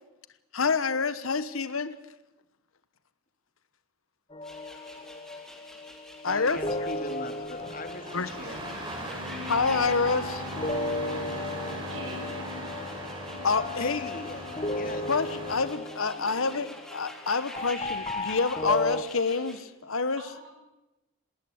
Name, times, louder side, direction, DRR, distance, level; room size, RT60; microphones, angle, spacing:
voice 1, 0.5-2.0 6.2-6.6 8.1-8.3 9.4-10.4 13.4-14.1 15.1-16.7 16.9-20.2, left 4 dB, 80° left, 14 dB, 1.2 m, -27 dB
sound 1, 4.3-19.0, left 1 dB, 25° left, 1.1 m, -35 dB
sound 2, 4.4-19.6, left 1 dB, 5° left, 3.7 m, -47 dB
voice 2, 6.2-8.6 13.8-15.4, left 2 dB, 40° left, 8 dB, 2.4 m, -40 dB
Engine starting, 7.6-15.7, equal, 25° right, 5.3 m, -38 dB
voice 3, 11.9-12.7 16.0-16.6 20.2-20.7, right 2 dB, 75° right, 2 dB, 6.2 m, -44 dB
19.5 x 19.5 x 8.0 m, 0.97 s
head